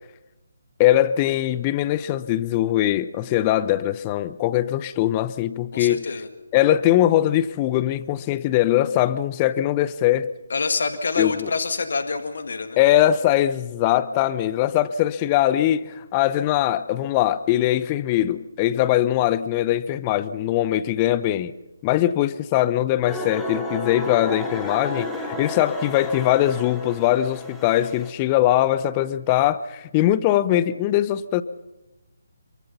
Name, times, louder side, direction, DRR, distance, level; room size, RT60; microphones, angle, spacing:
voice 1, 0.8-6.0 6.5-10.3 11.2-11.5 12.8-21.5 21.8-31.4, left 13 dB, 20° left, 16 dB, 0.7 m, -21 dB
voice 2, 5.7-6.3 10.5-12.8, left 4 dB, 55° left, 8 dB, 1.9 m, -26 dB
sound 1, 23.1-28.1, left 1 dB, 5° left, 2.4 m, -32 dB
26.0 x 23.5 x 5.7 m, 1.0 s
figure-of-eight pair, 145°, 0 cm